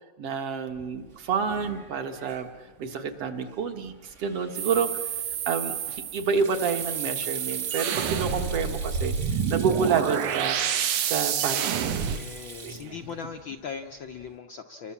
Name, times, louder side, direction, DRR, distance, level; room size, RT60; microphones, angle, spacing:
voice 1, 0.2-2.5 2.8-5.0 5.5-10.6 11.0-12.0 12.6-12.9, right 6 dB, 55° right, 6 dB, 2.5 m, -29 dB
Sink (filling or washing), 0.7-14.4, right 4 dB, 35° right, 1.2 m, -45 dB
sound 1, 4.5-12.2, right 8 dB, 85° right, 2.7 m, -29 dB
voice 2, 12.0-14.9, left 6 dB, 65° left, 4 dB, 1.3 m, -40 dB
29.0 x 23.0 x 7.3 m, 1.2 s
omnidirectional pair, 3.3 m